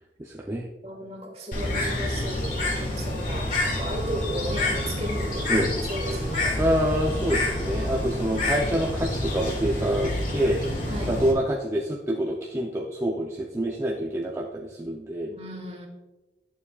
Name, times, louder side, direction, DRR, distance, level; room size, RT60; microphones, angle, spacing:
voice 1, 0.2-0.7 5.5-5.7 6.6-10.6 11.1-15.3, right 1 dB, 15° right, -2 dB, 0.5 m, -26 dB
voice 2, 0.8-6.6 10.9-11.2 15.3-15.9, right 1 dB, 35° right, 2 dB, 1.5 m, -35 dB
Bird, 1.5-11.3, left 1 dB, 45° left, 1.8 m, -28 dB
11.0 x 7.0 x 2.4 m, 1.1 s
head